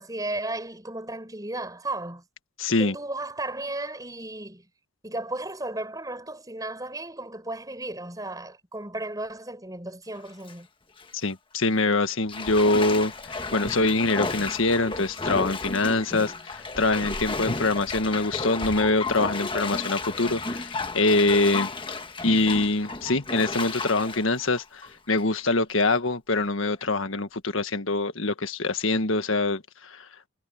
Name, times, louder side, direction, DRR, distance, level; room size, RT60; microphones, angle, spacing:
voice 1, 0.0-2.2 2.8-4.7 5.0-10.7, right 2 dB, 15° right, 6.3 m, -34 dB
voice 2, 2.6-2.9 11.1-21.7 22.2-30.0, left 2 dB, 75° left, 1.6 m, -24 dB
Bathtub (filling or washing), 10.1-10.5 11.0-11.1 12.3-25.4 25.8-25.9, left 3 dB, 25° left, 1.3 m, -33 dB
head